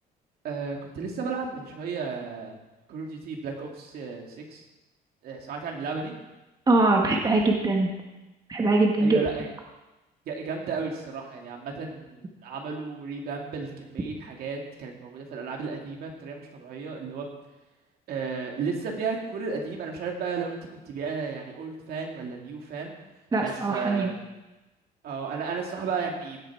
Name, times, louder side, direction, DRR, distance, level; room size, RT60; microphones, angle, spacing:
voice 1, 0.4-2.5 2.9-4.6 5.2-6.1 9.0-9.5 10.3-17.3 18.1-20.6 20.9-23.0 23.4-24.1 25.0-26.4, right 5 dB, 65° right, 1 dB, 2.5 m, -33 dB
voice 2, 6.7-7.9 8.5-9.2 23.3-24.1, right 2 dB, 25° right, 1 dB, 1.7 m, -22 dB
16.5 x 8.0 x 4.7 m, 1.0 s
cardioid pair, 110°, 17 cm